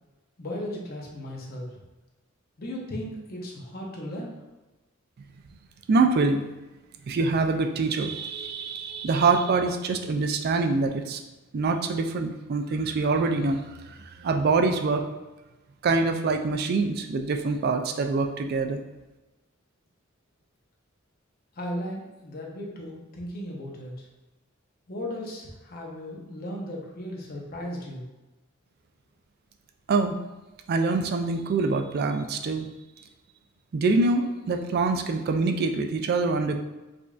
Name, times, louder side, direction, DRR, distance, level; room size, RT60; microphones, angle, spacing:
voice 1, 0.4-1.8 2.6-4.4 21.6-23.9 24.9-28.1, left 1 dB, 50° left, -2 dB, 0.8 m, -36 dB
voice 2, 5.9-6.4 7.0-11.2 11.5-15.0 15.8-18.8 29.9-30.2 30.7-32.7 33.7-36.6, right 3 dB, 50° right, 5 dB, 0.3 m, -25 dB
4.9 x 2.5 x 2.4 m, 1.1 s
head